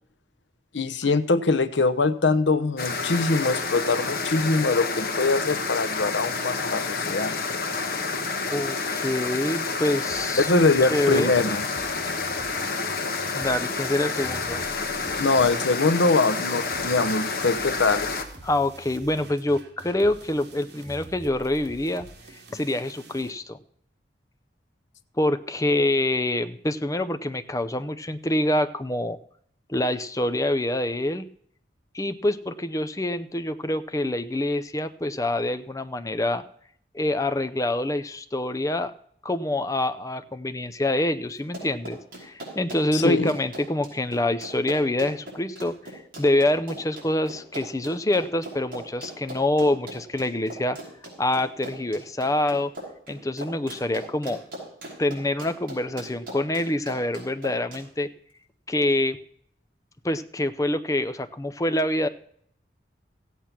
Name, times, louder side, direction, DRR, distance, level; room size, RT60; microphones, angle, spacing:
voice 1, 0.7-7.4 10.4-11.7 15.2-18.1 42.9-43.4, left 3 dB, 80° left, 14 dB, 0.9 m, -23 dB
sound 1, 2.8-18.2, left 4 dB, 55° left, 1.3 m, -29 dB
voice 2, 8.5-10.5 10.9-11.3 13.3-14.6 18.4-22.1 22.5-23.6 25.2-29.2 29.7-31.2 31.9-36.4 36.9-38.9 39.2-50.8 51.2-52.7 53.1-54.4 55.0-58.1 58.7-59.2 60.0-62.1, left 1 dB, 20° left, 9 dB, 0.6 m, -26 dB
sound 2, 10.1-23.3, right 2 dB, 70° right, 2.4 m, -46 dB
Run, 41.4-57.8, right 1 dB, 50° right, 5.7 m, -40 dB
15.0 x 8.4 x 5.9 m, 0.66 s
head